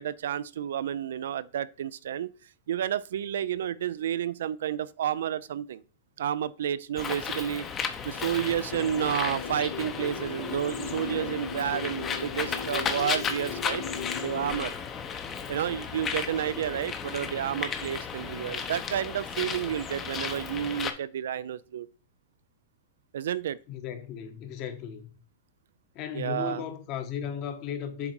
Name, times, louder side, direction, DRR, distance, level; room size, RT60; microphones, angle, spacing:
voice 1, 0.0-2.3 2.7-5.8 6.2-7.7 8.0-13.8 14.2-14.7 15.5-21.9 23.1-23.6 26.1-26.6, right 10 dB, 80° right, 0.4 m, -30 dB
Bird, 7.0-20.9, left 6 dB, 20° left, 0.8 m, -34 dB
sound 1, 8.7-14.7, left 6 dB, 85° left, 2.2 m, -38 dB
voice 2, 23.7-25.1 25.9-28.1, left 8 dB, 40° left, 1.3 m, -35 dB
7.3 x 3.9 x 4.6 m
supercardioid pair, 145°, 0 cm